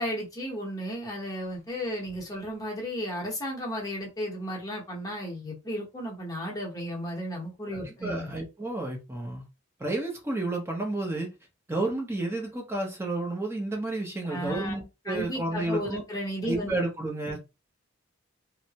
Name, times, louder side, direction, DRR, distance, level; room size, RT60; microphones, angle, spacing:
voice 1, 0.0-8.3 14.3-14.8 15.1-16.8, equal, 15° left, 1.0 m, -34 dB
voice 2, 7.7-9.4 9.8-11.3 11.7-16.0 16.5-17.4, right 2 dB, 10° right, 0.7 m, -31 dB
3.2 x 2.0 x 2.8 m
head